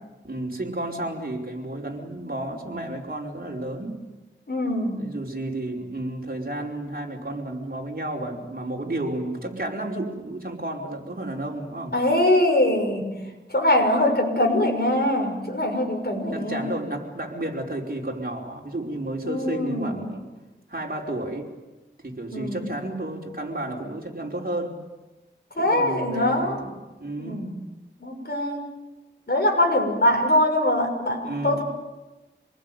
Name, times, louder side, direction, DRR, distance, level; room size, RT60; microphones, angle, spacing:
voice 1, 0.2-4.0 4.9-12.0 13.0-13.3 16.3-20.3 20.7-21.5 22.0-24.8 25.5-27.4 31.2-31.6, right 1 dB, 50° right, -1 dB, 5.1 m, -32 dB
voice 2, 4.5-5.0 11.9-13.1 13.5-16.7 19.2-20.1 22.3-22.7 25.6-26.6 27.2-27.5 28.0-28.6 29.3-31.6, left 1 dB, 55° left, 2 dB, 6.3 m, -23 dB
27.0 x 20.5 x 9.4 m, 1.1 s
wide cardioid pair, 40°, 20 cm